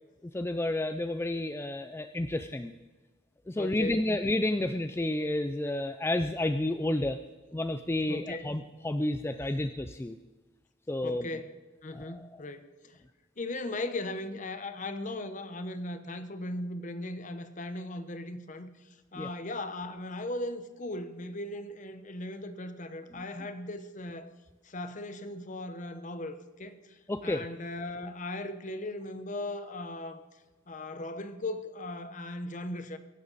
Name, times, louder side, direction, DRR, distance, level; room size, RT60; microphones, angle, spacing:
voice 1, 0.3-2.7 3.5-7.2 7.5-10.2 10.9-11.3 11.9-12.3 19.1-19.3 27.1-27.5, left 1 dB, 10° left, 9 dB, 0.4 m, -30 dB
voice 2, 3.6-4.0 8.1-8.5 11.0-11.5 11.8-13.0 13.4-24.3 24.6-30.2 30.7-33.0, left 2 dB, 40° left, 10 dB, 1.0 m, -38 dB
23.0 x 11.5 x 4.1 m, 1.2 s
head